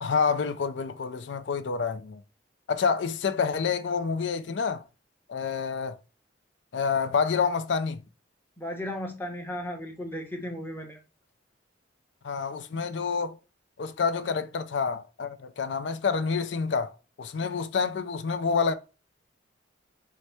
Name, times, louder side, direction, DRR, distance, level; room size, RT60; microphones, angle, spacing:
voice 1, 0.0-2.2 2.7-4.8 5.3-6.0 6.7-8.0 12.2-13.4 13.8-16.9 17.2-18.7, left 5 dB, 70° left, 0.4 m, -28 dB
voice 2, 8.6-11.0, left 1 dB, 10° left, 0.8 m, -35 dB
4.7 x 2.1 x 4.2 m
head